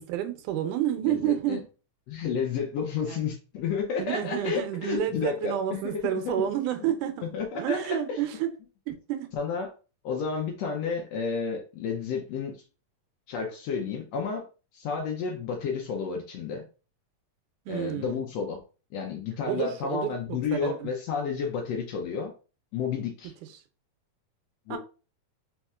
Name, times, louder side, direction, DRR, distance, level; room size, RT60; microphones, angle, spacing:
voice 1, 0.0-1.6 3.1-3.2 4.0-8.5 8.9-9.3 17.7-18.2 19.5-20.4 20.6-20.9 24.7-24.8, right 11 dB, 80° right, 2.2 m, -30 dB
voice 2, 1.0-1.6 2.1-6.4 7.2-8.2 9.3-9.7 10.0-12.6 13.3-14.4 14.7-16.6 17.7-18.6 18.9-22.3 22.7-23.3 24.7-24.8, left 6 dB, 75° left, 1.6 m, -31 dB
4.3 x 4.2 x 2.4 m
omnidirectional pair, 3.6 m